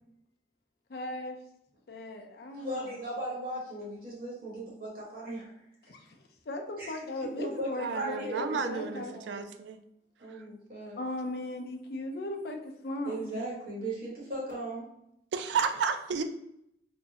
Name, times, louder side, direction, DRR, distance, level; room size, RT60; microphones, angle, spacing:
voice 1, 0.9-1.4 1.9-2.9 5.9-6.0 6.5-9.1 11.0-13.3, left 1 dB, 60° left, 3 dB, 0.4 m, -37 dB
voice 2, 2.5-5.5 6.8-7.0 7.4-8.4 9.1-9.5 10.2-11.0 13.0-14.8, right 1 dB, 55° right, -5 dB, 1.2 m, -37 dB
voice 3, 7.8-9.8 10.3-10.4 15.3-16.2, right 6 dB, 80° right, 8 dB, 0.3 m, -32 dB
3.4 x 2.1 x 2.8 m, 0.76 s
head